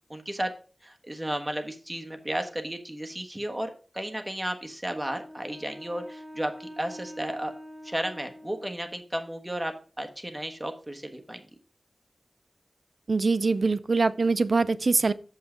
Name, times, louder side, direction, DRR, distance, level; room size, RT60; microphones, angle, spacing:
voice 1, 0.1-0.5 0.8-7.5 7.8-11.4, right 1 dB, 15° right, 1.3 m, -33 dB
Wind instrument woodwind instrument, 4.8-9.1, equal, 35° right, 2.1 m, -45 dB
voice 2, 13.1-15.1, right 3 dB, 65° right, 0.4 m, -23 dB
7.1 x 5.6 x 5.0 m
wide cardioid pair, 85°, 0 cm